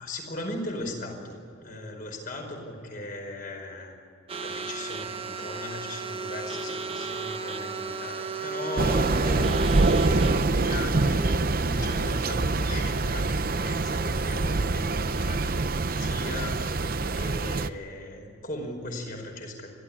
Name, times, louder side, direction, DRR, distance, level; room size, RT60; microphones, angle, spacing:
voice 1, 0.0-4.0 4.4-19.7, left 1 dB, 45° left, 3 dB, 5.0 m, -38 dB
sound 1, 4.3-10.4, right 3 dB, 30° right, 1.2 m, -34 dB
Thunder / Rain, 8.8-17.7, right 3 dB, 50° right, 0.7 m, -25 dB
30.0 x 13.0 x 9.9 m, 2.5 s
head